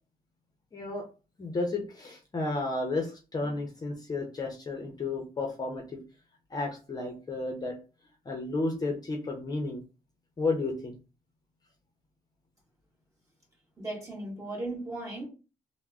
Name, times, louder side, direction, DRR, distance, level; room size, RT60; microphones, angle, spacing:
voice 1, 0.7-1.1 1.4-6.0 6.5-7.8 8.3-9.8 10.4-11.0, left 3 dB, 25° left, 1 dB, 0.6 m, -32 dB
voice 2, 13.8-15.3, right 2 dB, 20° right, -3 dB, 1.6 m, -36 dB
3.4 x 2.0 x 3.5 m, 0.33 s
cardioid pair, 140°, 15 cm